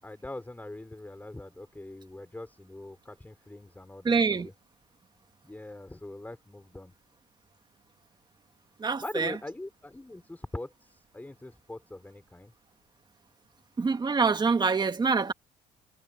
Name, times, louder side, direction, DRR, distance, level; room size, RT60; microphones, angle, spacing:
voice 1, 0.0-4.5 5.4-6.9 9.0-12.5, left 2 dB, 10° left, 5.1 m, -42 dB
voice 2, 4.0-4.5 8.8-9.3 13.8-15.3, right 4 dB, 25° right, 1.8 m, -25 dB
cardioid pair, 110°, 17 cm